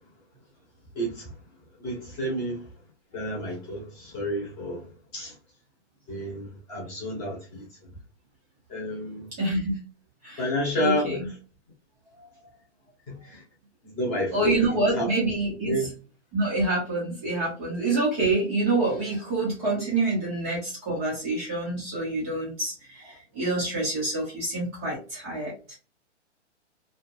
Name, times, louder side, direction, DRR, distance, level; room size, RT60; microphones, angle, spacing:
voice 1, 0.9-1.3 1.8-2.6 3.1-4.9 5.1-5.3 6.1-7.7 8.7-9.3 10.4-11.2 13.1-13.4 13.8-15.1 15.7-15.9, equal, 15° left, 0.9 m, -30 dB
voice 2, 9.4-9.8 10.2-10.5 10.8-11.3 14.3-15.7 16.3-25.7, right 2 dB, 10° right, 0.5 m, -27 dB
2.6 x 2.5 x 2.5 m
hypercardioid pair, 160°, 36 cm